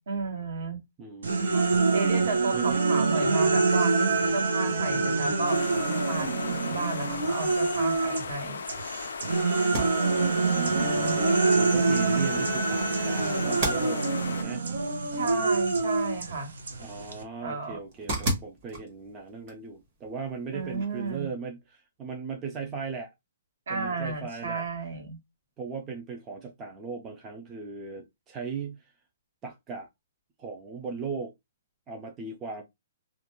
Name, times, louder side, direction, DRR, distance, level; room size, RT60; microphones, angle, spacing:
voice 1, 0.0-0.8 1.9-8.6 10.0-11.2 15.1-16.5 17.4-17.8 20.5-21.3 23.7-25.2, right 4 dB, 65° right, 1.2 m, -33 dB
voice 2, 1.0-1.6 2.5-2.7 9.8-14.6 16.8-23.1 23.7-24.7 25.6-28.9 29.4-29.9 30.4-31.3 31.9-32.6, right 5 dB, 15° right, 0.4 m, -38 dB
sound 1, 1.2-8.3 8.7-17.2, right 3 dB, 80° right, 0.7 m, -26 dB
sound 2, 5.5-14.4, left 6 dB, 70° left, 0.3 m, -38 dB
sound 3, 14.2-21.2, right 1 dB, 30° right, 0.9 m, -39 dB
2.4 x 2.1 x 2.9 m
hypercardioid pair, 175°, 0 cm